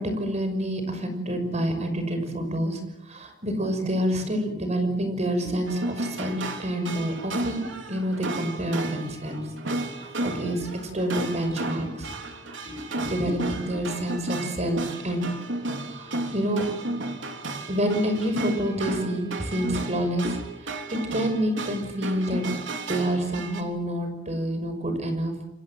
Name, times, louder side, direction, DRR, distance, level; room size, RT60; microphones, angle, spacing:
voice 1, 0.0-9.5 10.0-10.7 10.9-12.1 12.6-15.3 15.8-16.6 17.7-22.5 22.9-25.3, equal, 35° right, 7 dB, 6.0 m, -28 dB
sound 1, 5.7-23.6, right 2 dB, 80° right, 3.5 m, -33 dB
29.0 x 24.0 x 7.6 m, 0.85 s
head